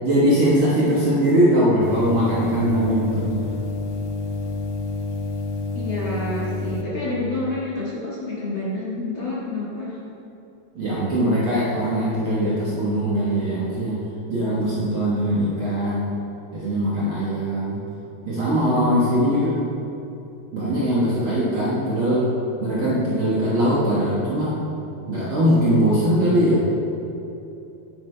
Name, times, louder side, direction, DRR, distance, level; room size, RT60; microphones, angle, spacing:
voice 1, 0.0-3.3 10.7-14.0 14.3-16.1 16.5-17.8 18.2-19.5 20.5-22.3 22.6-24.7 25.0-26.7, equal, 75° right, -8 dB, 1.1 m, -21 dB
sound 1, 1.8-6.8, left 3 dB, 90° left, 1.7 m, -29 dB
voice 2, 5.7-10.0 19.3-19.4, left 2 dB, 50° left, -8 dB, 1.5 m, -28 dB
11.0 x 8.8 x 3.3 m, 2.8 s
omnidirectional pair, 4.5 m